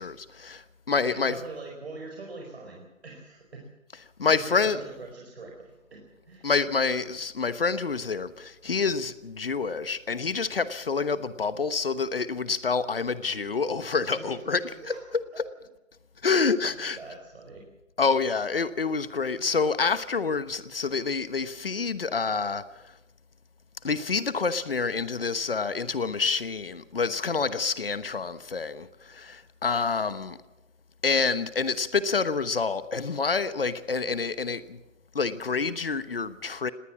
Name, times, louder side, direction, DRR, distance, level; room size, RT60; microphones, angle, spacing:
voice 1, 0.0-1.4 4.2-4.8 6.4-14.9 15.4-15.5 16.2-17.0 18.0-22.6 23.8-30.4 31.0-34.8 35.1-36.7, left 4 dB, 45° left, 1.1 m, -27 dB
voice 2, 1.0-3.7 4.3-5.6 5.9-6.5 14.1-15.2 17.0-17.6, right 3 dB, 50° right, 4.8 m, -43 dB
19.0 x 19.0 x 7.2 m
figure-of-eight pair, 165°, 40 cm